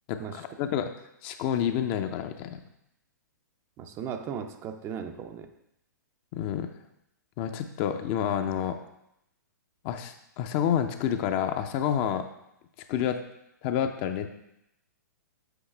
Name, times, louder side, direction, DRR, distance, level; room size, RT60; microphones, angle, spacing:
voice 1, 0.1-0.9 1.2-2.6 6.3-6.7 7.4-8.8 9.8-12.3 12.9-13.2 13.6-14.3, left 9 dB, 35° left, 7 dB, 0.6 m, -29 dB
voice 2, 3.8-5.5, right 7 dB, 25° right, 7 dB, 0.5 m, -37 dB
8.0 x 5.4 x 3.4 m, 0.81 s
figure-of-eight pair, 120°, 10 cm